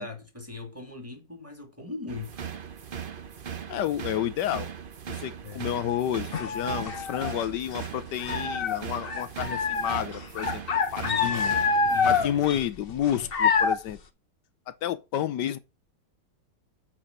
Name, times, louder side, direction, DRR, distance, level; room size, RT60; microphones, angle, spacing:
voice 1, 0.0-2.4 5.4-5.7 11.0-11.5 11.9-12.4, left 4 dB, 10° right, 2.4 m, -39 dB
sound 1, 2.1-12.5, right 8 dB, 50° right, 0.6 m, -39 dB
voice 2, 3.7-4.7 5.1-10.6 10.9-11.5 12.0-14.0 14.7-15.6, left 11 dB, 75° left, 1.3 m, -30 dB
sound 2, 6.3-7.9 8.2-13.9, left 5 dB, 40° left, 0.9 m, -26 dB
8.7 x 5.0 x 6.6 m
omnidirectional pair, 1.9 m